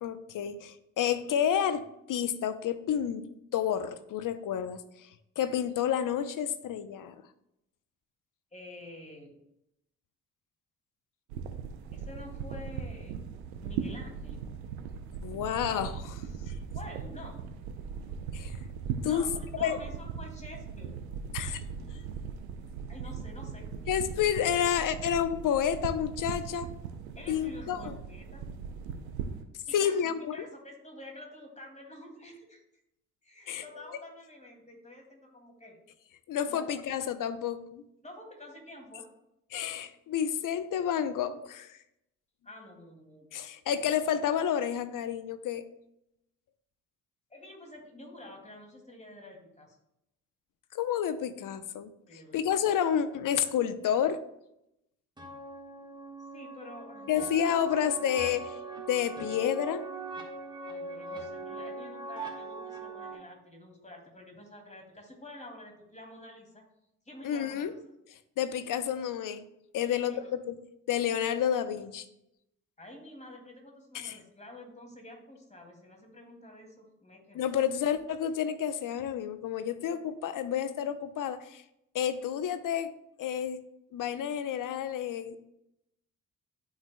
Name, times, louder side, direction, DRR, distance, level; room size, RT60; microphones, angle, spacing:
voice 1, 0.0-1.8 2.1-3.3 3.5-4.8 5.4-7.1 15.2-16.2 16.5-16.6 18.3-18.6 19.0-19.2 19.6-19.8 21.3-21.6 23.9-26.7 27.3-27.9 29.7-30.4 33.5-33.6 36.3-37.8 39.5-41.8 43.3-45.6 50.7-51.9 52.3-54.2 57.1-59.8 67.2-67.7 68.4-69.4 69.7-70.1 70.5-70.6 70.9-72.1 73.9-74.2 77.3-81.6 81.9-82.9 83.2-83.6 83.9-85.4, left 9 dB, 50° left, 12 dB, 0.7 m, -30 dB
voice 2, 8.5-9.4 11.9-14.5 16.7-17.4 19.0-21.1 22.9-23.7 27.2-28.5 29.7-30.0 30.3-32.6 33.2-35.8 36.5-36.8 38.0-39.1 42.4-43.3 43.7-44.0 47.3-49.8 52.1-52.5 56.3-57.1 60.7-66.6 67.1-67.8 69.8-70.3 72.8-77.5, left 1 dB, 15° left, 2 dB, 2.3 m, -48 dB
sound 1, 11.3-29.4, right 6 dB, 80° right, 0.7 m, -39 dB
sound 2, 55.2-63.1, right 3 dB, 10° right, 1.5 m, -41 dB
12.0 x 4.7 x 2.2 m, 0.83 s
hypercardioid pair, 45°, 42 cm